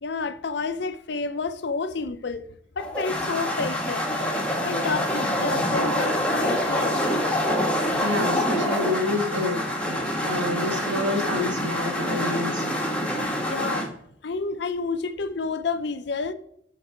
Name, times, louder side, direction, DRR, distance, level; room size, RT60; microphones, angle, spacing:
voice 1, 0.0-2.5 2.8-4.0 4.6-7.0 13.5-13.9 14.2-16.3, left 4 dB, 65° left, 0.6 m, -29 dB
sound 1, 2.8-13.9, equal, 5° left, 1.3 m, -26 dB
voice 2, 8.0-12.7, left 2 dB, 75° right, 2.0 m, -28 dB
11.5 x 4.0 x 4.5 m
head